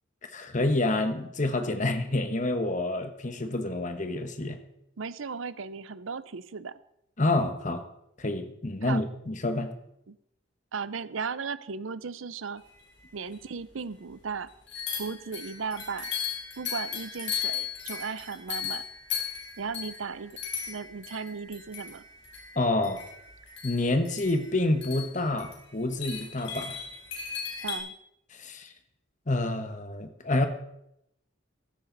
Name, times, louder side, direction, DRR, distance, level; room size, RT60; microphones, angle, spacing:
voice 1, 0.2-4.6 7.2-7.8 8.2-9.7 22.5-23.0 23.6-26.8 28.3-28.7 29.3-30.5, left 2 dB, 40° left, 7 dB, 1.3 m, -28 dB
voice 2, 5.0-6.8 8.8-9.0 10.1-10.2 10.7-12.6 13.1-14.5 15.0-16.1 16.6-18.8 19.6-20.3 20.7-22.0 27.6-27.9, right 5 dB, 85° right, 16 dB, 0.6 m, -36 dB
sound 1, 13.0-13.1 13.3-13.4 14.7-27.8, left 8 dB, 65° left, 4.1 m, -37 dB
15.0 x 13.0 x 4.0 m, 0.80 s
head